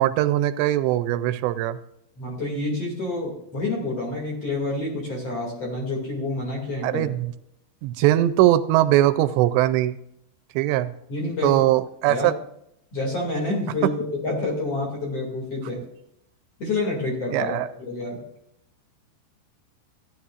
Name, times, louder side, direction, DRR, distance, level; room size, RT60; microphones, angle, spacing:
voice 1, 0.0-1.8 6.8-7.3 7.8-10.0 10.6-10.9 11.4-12.3 17.3-17.7, right 14 dB, 85° right, 12 dB, 2.7 m, -21 dB
voice 2, 2.2-7.1 11.1-11.5 12.1-12.3 12.9-15.8 16.6-18.2, left 2 dB, 40° left, -2 dB, 2.7 m, -28 dB
15.5 x 10.5 x 2.4 m, 0.77 s
omnidirectional pair, 5.1 m